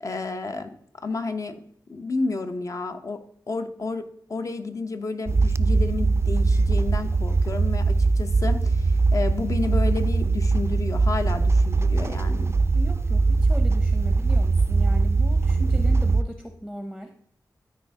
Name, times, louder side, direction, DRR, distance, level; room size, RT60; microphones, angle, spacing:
voice 1, 0.0-0.8 1.0-1.6 1.9-3.2 3.5-12.5, left 3 dB, 50° left, 7 dB, 0.8 m, -31 dB
sound 1, 5.3-16.2, right 3 dB, 40° right, 0.3 m, -21 dB
voice 2, 12.7-17.1, equal, 5° left, 5 dB, 0.7 m, -37 dB
13.0 x 4.4 x 3.6 m, 0.68 s
wide cardioid pair, 80°, 7 cm